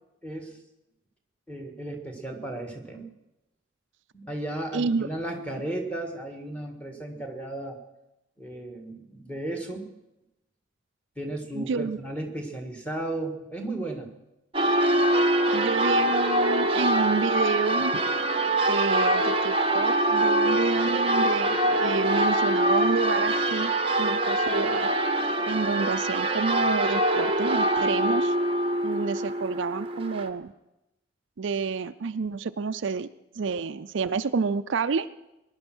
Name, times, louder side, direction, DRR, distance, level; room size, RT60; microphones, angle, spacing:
voice 1, 0.2-0.6 1.5-3.1 4.1-7.8 8.4-9.9 11.2-14.1, right 1 dB, 5° left, 3 dB, 1.8 m, -34 dB
voice 2, 4.7-5.1 11.5-12.0 15.5-18.0 18.7-23.7 24.0-24.9 25.5-28.4 28.8-30.5 31.4-33.1 33.4-35.1, right 5 dB, 65° right, 12 dB, 0.4 m, -29 dB
Church bell, 14.5-30.3, right 1 dB, 25° right, 0.9 m, -24 dB
21.0 x 10.5 x 6.2 m, 0.93 s
head